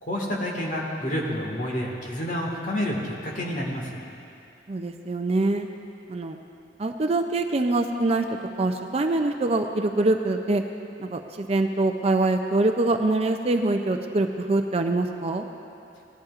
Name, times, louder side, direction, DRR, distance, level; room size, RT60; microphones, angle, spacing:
voice 1, 0.0-3.9, equal, 45° left, -2 dB, 1.7 m, -29 dB
voice 2, 4.7-5.7 6.1-6.4 6.8-10.6 11.0-15.5, right 2 dB, 35° right, 5 dB, 0.4 m, -24 dB
17.5 x 11.5 x 2.5 m, 2.6 s
head